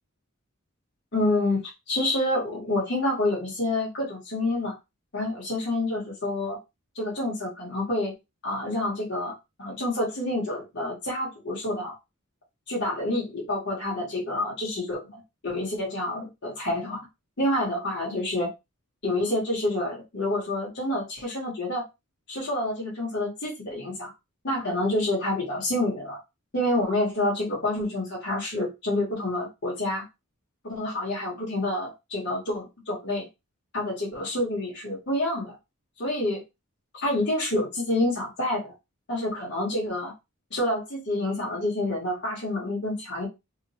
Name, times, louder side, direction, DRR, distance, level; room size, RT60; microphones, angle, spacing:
voice 1, 1.1-4.8 5.1-6.6 6.9-8.1 8.4-9.3 9.6-11.9 12.7-17.0 17.4-18.5 19.0-21.8 22.3-24.1 24.4-26.2 26.5-30.0 30.6-33.2 33.7-35.5 36.0-36.4 37.0-38.7 39.1-40.1 40.5-43.3, left 1 dB, 55° left, -4 dB, 1.2 m, -28 dB
2.8 x 2.5 x 2.8 m, 0.24 s
head